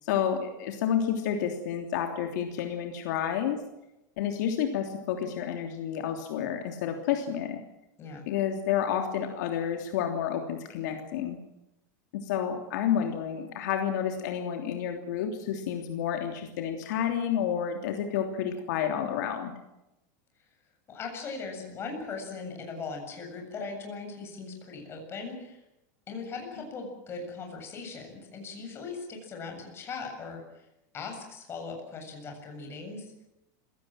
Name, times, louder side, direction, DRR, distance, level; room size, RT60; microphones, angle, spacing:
voice 1, 0.0-3.6 4.2-7.6 8.3-11.4 12.2-19.5, left 9 dB, 70° left, 4 dB, 3.2 m, -30 dB
voice 2, 20.9-25.6 26.1-30.7 30.9-33.1, left 4 dB, 25° left, 3 dB, 7.7 m, -39 dB
26.5 x 17.5 x 7.7 m, 0.90 s
supercardioid pair, 150°, 10 cm